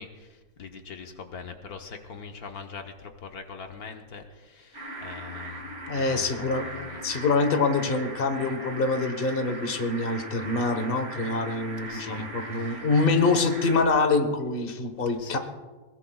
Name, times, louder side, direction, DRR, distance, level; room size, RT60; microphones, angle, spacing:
voice 1, 0.0-7.0 11.9-12.8 15.2-15.4, left 5 dB, 75° left, 4 dB, 1.5 m, -42 dB
sound 1, 4.7-13.8, right 2 dB, 50° right, 2.4 m, -39 dB
voice 2, 5.9-6.7 7.0-15.4, left 3 dB, 40° left, 7 dB, 1.4 m, -25 dB
21.5 x 21.0 x 2.4 m, 1.4 s
omnidirectional pair, 1.6 m